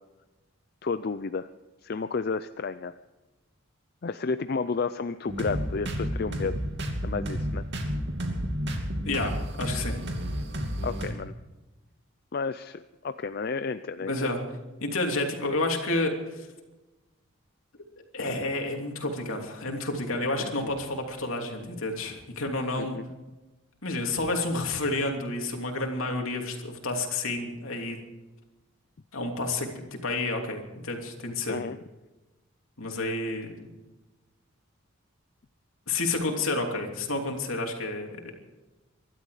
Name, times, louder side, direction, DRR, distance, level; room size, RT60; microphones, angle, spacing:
voice 1, 0.8-1.5 1.8-2.9 4.0-6.6 7.0-7.6 10.8-11.3 12.3-14.3 20.4-20.7 22.8-23.0 31.5-31.8, left 4 dB, 45° left, 12 dB, 0.4 m, -32 dB
sound 1, 5.3-11.1, equal, 55° right, 2.6 m, -31 dB
voice 2, 9.0-10.0 14.0-14.5 14.8-16.5 18.1-23.0 23.8-28.0 29.1-31.6 32.8-33.5 35.9-38.2, left 2 dB, 70° left, 2 dB, 2.9 m, -30 dB
24.0 x 12.0 x 5.0 m, 1.1 s
head